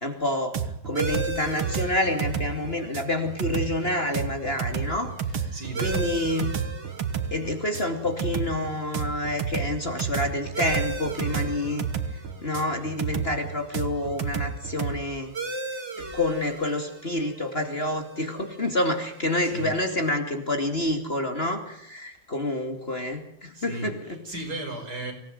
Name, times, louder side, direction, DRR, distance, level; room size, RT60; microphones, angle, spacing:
voice 1, 0.0-5.5 5.8-6.5 7.3-11.9 12.1-15.3 16.0-24.2, left 1 dB, 30° left, 5 dB, 2.8 m, -28 dB
sound 1, 0.5-15.0, right 7 dB, 85° right, 2.5 m, -30 dB
sound 2, 0.9-20.1, right 2 dB, 30° right, 2.8 m, -39 dB
voice 2, 5.5-6.1 19.4-19.7 23.5-23.9 24.2-25.1, right 1 dB, 50° right, 4 dB, 5.8 m, -34 dB
25.5 x 18.5 x 9.2 m, 0.74 s
omnidirectional pair, 2.2 m